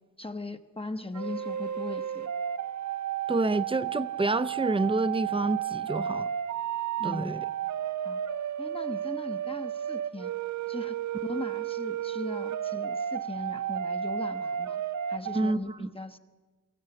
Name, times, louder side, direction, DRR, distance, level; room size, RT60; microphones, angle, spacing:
voice 1, 0.2-2.3 7.0-7.4 8.0-8.2 8.6-10.3 10.7-14.8 15.1-16.2, left 2 dB, 20° left, 0.9 m, -39 dB
sound 1, 1.1-15.5, right 9 dB, 70° right, 0.7 m, -33 dB
voice 2, 3.3-6.3 7.0-7.4 15.3-15.9, right 2 dB, 20° right, 0.6 m, -28 dB
23.5 x 15.0 x 7.8 m
wide cardioid pair, 95°, 30 cm